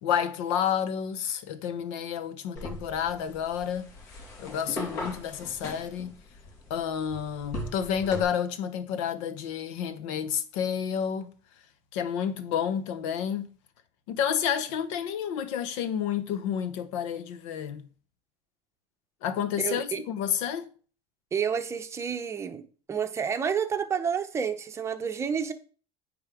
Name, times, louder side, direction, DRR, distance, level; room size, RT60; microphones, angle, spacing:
voice 1, 0.0-3.9 4.4-6.1 6.7-11.3 11.9-13.5 14.1-17.9 19.2-20.7, left 8 dB, 70° left, 1.0 m, -30 dB
sound 1, 2.6-8.2, left 1 dB, 50° left, 2.5 m, -40 dB
voice 2, 19.6-20.0 21.3-22.6 22.9-25.5, right 7 dB, 15° right, 0.8 m, -29 dB
9.5 x 3.4 x 5.0 m
supercardioid pair, 150°, 16 cm